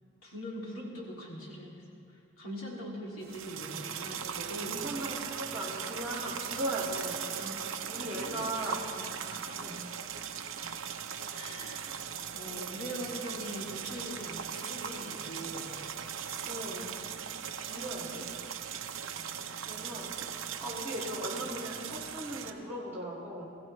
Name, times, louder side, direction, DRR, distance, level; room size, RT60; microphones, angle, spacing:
voice 1, 0.2-1.8 2.1-4.8 7.4-7.6 7.9-9.7 11.3-11.9 12.3-15.7 16.7-16.9 17.2-17.3 19.1-19.3, equal, 90° left, -3 dB, 2.6 m, -42 dB
sound 1, 3.2-22.5, right 8 dB, 75° right, 0.7 m, -39 dB
voice 2, 4.7-7.3 7.8-8.9 9.3-9.9 11.7-12.0 12.5-12.7 16.4-16.9 17.6-18.4 19.7-20.2 20.6-23.5, right 1 dB, 10° right, -9 dB, 2.0 m, -38 dB
22.0 x 15.5 x 3.2 m, 2.5 s
head